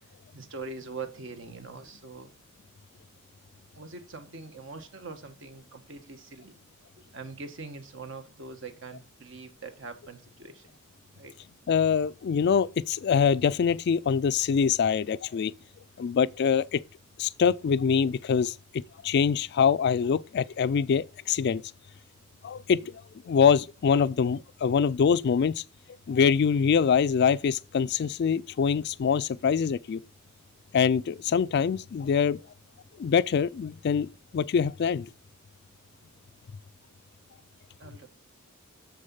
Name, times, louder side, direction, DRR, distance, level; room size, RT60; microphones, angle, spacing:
voice 1, 0.3-2.3 3.7-6.5 7.1-10.7 11.1-11.3 37.8-38.1, right 4 dB, 60° right, 1.4 m, -42 dB
voice 2, 11.7-15.5 16.0-16.8 17.2-21.6 22.4-22.8 23.3-25.6 26.1-30.0 30.7-32.4 33.0-34.1 34.3-35.1, left 6 dB, 55° left, 0.3 m, -24 dB
7.1 x 6.5 x 5.6 m
head